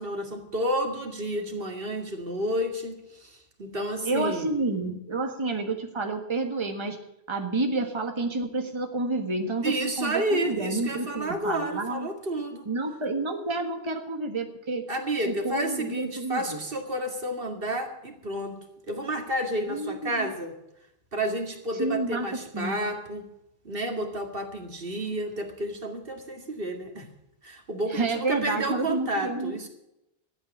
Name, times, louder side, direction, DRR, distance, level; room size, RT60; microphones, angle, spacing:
voice 1, 0.0-4.5 9.6-12.7 14.9-18.6 18.9-20.5 21.1-23.3 23.6-27.1 27.4-29.7, right 1 dB, 60° right, 4 dB, 2.3 m, -31 dB
voice 2, 4.0-7.0 7.3-12.1 12.7-14.8 15.3-16.6 19.6-20.3 21.7-22.3 22.5-22.8 27.9-29.6, right 2 dB, 25° right, 4 dB, 1.6 m, -29 dB
13.5 x 8.8 x 8.5 m, 0.85 s
omnidirectional pair, 1.1 m